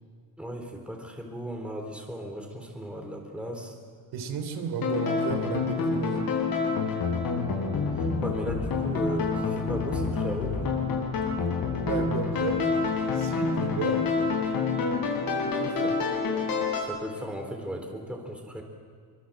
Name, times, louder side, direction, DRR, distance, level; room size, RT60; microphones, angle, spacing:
voice 1, 0.4-3.8 7.9-10.8 16.8-18.6, equal, 5° right, 2 dB, 3.9 m, -36 dB
voice 2, 4.1-6.2 11.9-12.6 13.1-14.1 15.5-16.0, right 6 dB, 80° right, 6 dB, 3.2 m, -33 dB
sound 1, 4.8-16.8, left 4 dB, 60° left, 6.3 m, -27 dB
24.5 x 24.0 x 7.6 m, 2.1 s
cardioid pair, 130°, 39 cm